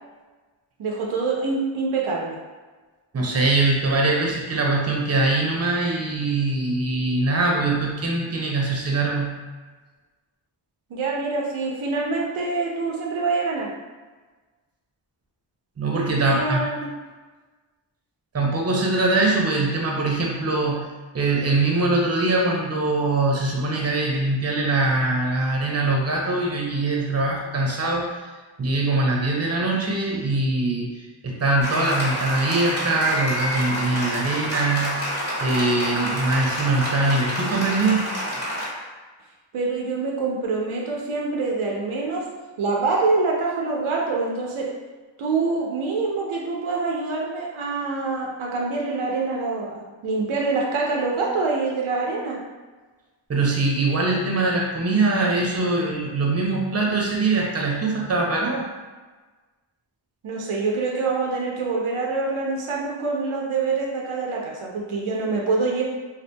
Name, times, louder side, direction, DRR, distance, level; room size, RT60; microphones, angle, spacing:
voice 1, 0.8-2.4 10.9-13.7 16.2-16.9 39.5-42.2 42.6-44.8 45.2-52.4 60.2-65.8, right 3 dB, 85° right, -2 dB, 0.6 m, -25 dB
voice 2, 3.1-9.4 15.8-16.6 18.3-20.9 21.1-28.2 28.6-35.0 35.4-38.0 53.3-58.6, right 2 dB, 30° right, -1 dB, 0.6 m, -22 dB
Applause, 31.6-38.7, equal, 25° left, 1.2 m, -28 dB
2.7 x 2.4 x 2.2 m, 1.3 s
cardioid pair, 45°, 48 cm